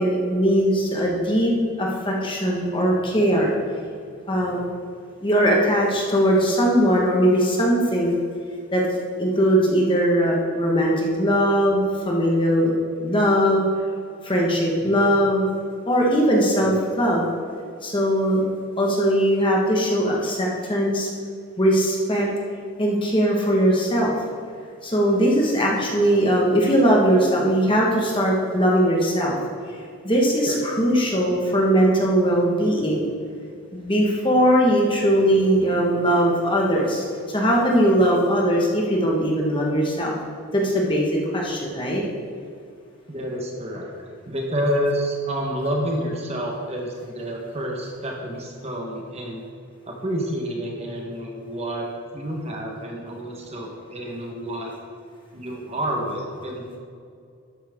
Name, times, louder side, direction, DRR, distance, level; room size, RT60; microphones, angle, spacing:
voice 1, 0.0-3.5 4.3-4.6 5.2-8.2 8.7-12.7 13.0-13.6 14.2-15.4 15.9-17.3 17.8-18.4 18.8-21.1 21.6-22.3 22.8-24.1 24.8-29.4 30.0-33.0 33.7-40.2 40.5-42.0, equal, 20° left, -2 dB, 1.4 m, -20 dB
voice 2, 43.1-43.9 44.2-49.5 49.9-51.8 52.1-54.7 55.3-56.8, equal, 30° right, 0 dB, 1.2 m, -29 dB
12.0 x 8.6 x 3.6 m, 2.3 s
head